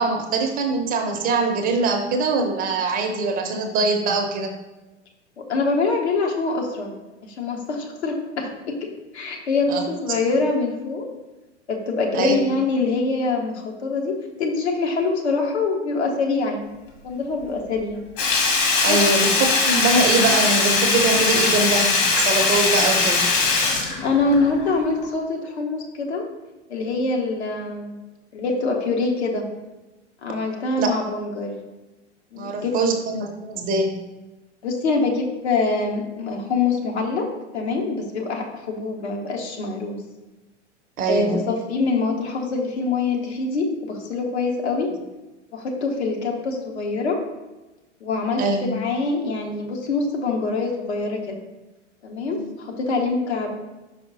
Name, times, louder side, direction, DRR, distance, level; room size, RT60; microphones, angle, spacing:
voice 1, 0.0-4.5 9.7-9.8 12.1-12.4 18.8-23.2 30.8-30.9 32.4-34.0 41.0-41.4 48.4-48.6 52.4-52.5, right 3 dB, 25° right, 4 dB, 0.6 m, -23 dB
voice 2, 5.4-8.9 9.1-11.1 11.7-16.7 17.0-18.0 18.9-19.0 24.0-26.3 26.7-28.0 28.3-29.5 30.2-31.6 32.3-32.7 34.6-40.0 41.1-44.9 45.5-47.2 48.0-51.4 52.0-53.5, left 3 dB, 65° left, 1 dB, 1.2 m, -24 dB
Sink (filling or washing), 18.2-24.7 25.0-25.1, left 4 dB, 50° left, 1.5 m, -20 dB
5.3 x 4.9 x 4.0 m, 1.1 s
figure-of-eight pair, 95°, 36 cm